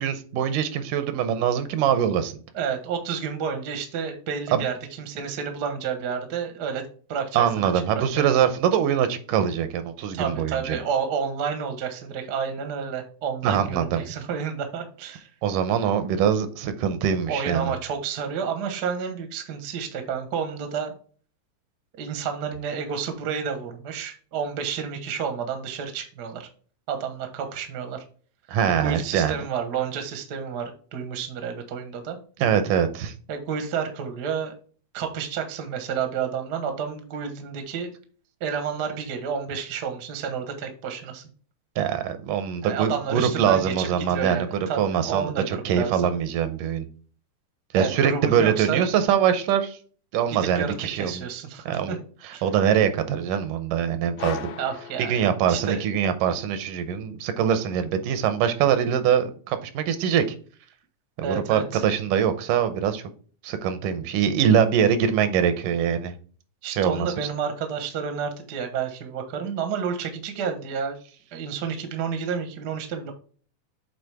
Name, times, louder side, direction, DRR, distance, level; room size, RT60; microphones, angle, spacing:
voice 1, 0.0-2.3 4.5-4.6 7.3-10.8 13.4-14.0 15.4-17.7 28.5-29.4 32.4-33.1 41.8-46.9 47.7-49.8 50.1-51.3 51.7-52.0 52.2-54.5 55.0-60.2 61.2-63.0 63.4-66.2 66.8-67.1, right 8 dB, 85° right, 2.3 m, -23 dB
voice 2, 2.5-8.0 10.1-15.3 17.3-20.9 21.9-26.5 26.9-28.0 28.7-32.2 33.3-34.5 34.9-37.9 38.4-41.3 42.6-45.4 45.7-46.1 47.7-48.9 50.3-52.0 52.3-52.4 54.6-55.8 61.2-61.8 66.6-71.0 71.3-73.1, right 6 dB, 60° right, 1.0 m, -30 dB
sound 1, 54.2-55.9, left 6 dB, 70° left, 2.0 m, -37 dB
7.9 x 4.1 x 3.4 m
omnidirectional pair, 3.7 m